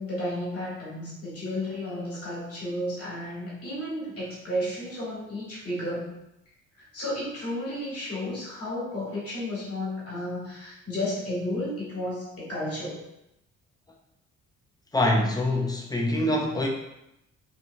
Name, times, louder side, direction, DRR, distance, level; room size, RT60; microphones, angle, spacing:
voice 1, 0.0-6.2 6.8-13.0, left 1 dB, 50° left, -6 dB, 1.5 m, -32 dB
voice 2, 14.9-16.7, left 1 dB, 15° left, 0 dB, 0.4 m, -24 dB
2.8 x 2.3 x 2.6 m, 0.84 s
cardioid pair, 90°, 30 cm